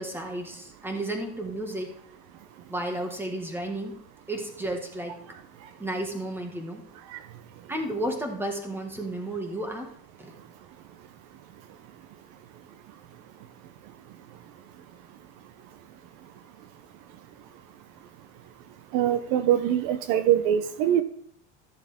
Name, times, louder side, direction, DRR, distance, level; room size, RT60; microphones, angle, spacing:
voice 1, 0.0-2.0 2.7-3.9 4.3-5.2 5.8-6.8 7.7-9.9 10.2-10.3, right 1 dB, 5° right, 3 dB, 1.8 m, -32 dB
voice 2, 18.9-21.0, right 10 dB, 60° right, 11 dB, 0.7 m, -23 dB
13.5 x 7.2 x 3.6 m, 0.66 s
supercardioid pair, 130°, 35 cm